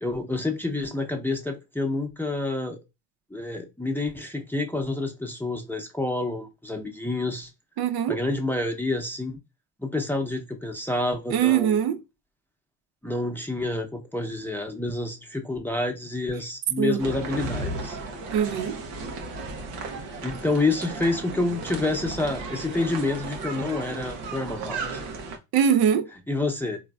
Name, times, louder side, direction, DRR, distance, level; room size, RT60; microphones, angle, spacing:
voice 1, 0.0-2.8 3.3-7.5 8.1-9.4 9.8-11.8 13.0-18.0 20.2-25.0 26.3-26.8, left 2 dB, 5° left, 0.7 m, -28 dB
voice 2, 7.8-8.2 11.3-12.0 16.8-17.1 18.3-18.8 25.5-26.1, right 8 dB, 60° right, 0.5 m, -22 dB
sound 1, 17.0-25.4, right 3 dB, 85° right, 0.8 m, -35 dB
3.8 x 2.7 x 2.3 m
hypercardioid pair, 55°, 46 cm